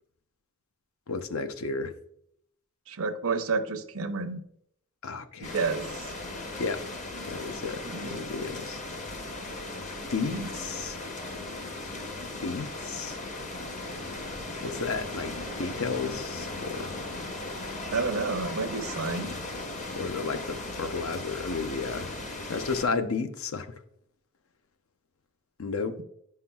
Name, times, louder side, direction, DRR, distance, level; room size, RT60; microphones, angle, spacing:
voice 1, 1.1-1.9 5.0-5.5 6.6-6.8 7.2-8.8 10.1-11.0 12.4-13.2 14.6-17.0 20.0-22.1 22.5-23.7 25.6-26.0, left 4 dB, 80° left, 0.5 m, -32 dB
voice 2, 2.9-4.4 5.4-6.1 7.9-8.2 10.3-10.5 10.8-10.9 17.9-19.4, right 4 dB, 80° right, 0.6 m, -30 dB
sound 1, 5.4-22.9, left 2 dB, 35° left, 0.7 m, -37 dB
8.4 x 5.6 x 2.3 m
head